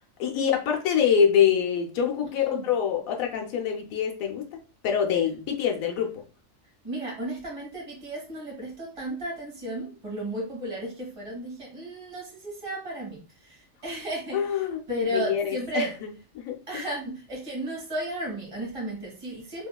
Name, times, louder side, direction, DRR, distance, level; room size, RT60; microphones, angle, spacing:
voice 1, 0.2-4.4 4.8-6.2 14.3-14.8 15.1-16.1 16.3-16.6, left 8 dB, 85° left, 2 dB, 1.0 m, -25 dB
voice 2, 6.8-15.9 16.7-19.7, right 1 dB, 25° right, -2 dB, 1.4 m, -34 dB
3.4 x 2.9 x 2.2 m, 0.36 s
omnidirectional pair, 1.4 m